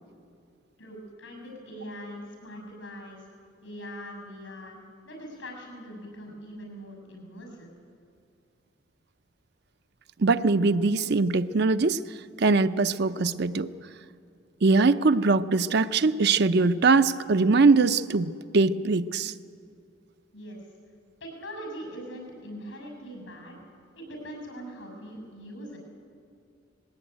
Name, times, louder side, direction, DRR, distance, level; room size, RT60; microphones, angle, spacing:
voice 1, 0.8-3.3 3.6-4.8 5.0-7.7 20.3-20.6 21.2-23.6 24.0-25.8, equal, 85° left, 3 dB, 6.9 m, -41 dB
voice 2, 10.2-12.0 12.4-13.7 14.6-19.3, right 3 dB, 55° right, 11 dB, 0.6 m, -22 dB
19.5 x 17.5 x 9.1 m, 2.4 s
head